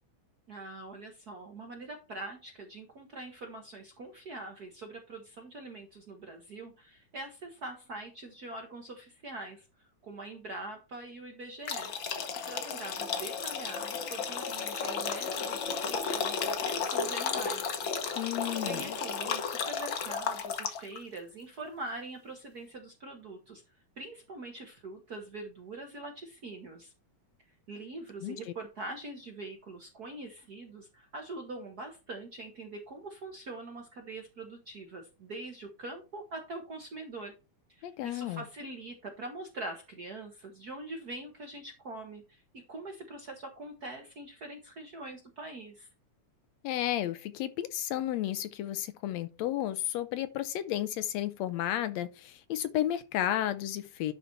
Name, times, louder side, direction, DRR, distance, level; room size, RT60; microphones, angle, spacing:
voice 1, 0.5-11.9 12.5-17.8 18.5-23.6 24.0-26.9 27.7-37.3 37.7-45.9, right 2 dB, 50° right, 1.1 m, -43 dB
sound 1, 11.7-21.0, left 6 dB, 55° left, 1.4 m, -33 dB
voice 2, 18.2-19.0 28.2-28.4 37.8-38.4 46.6-54.1, left 12 dB, 75° left, 1.7 m, -32 dB
11.0 x 4.1 x 4.5 m
omnidirectional pair, 3.3 m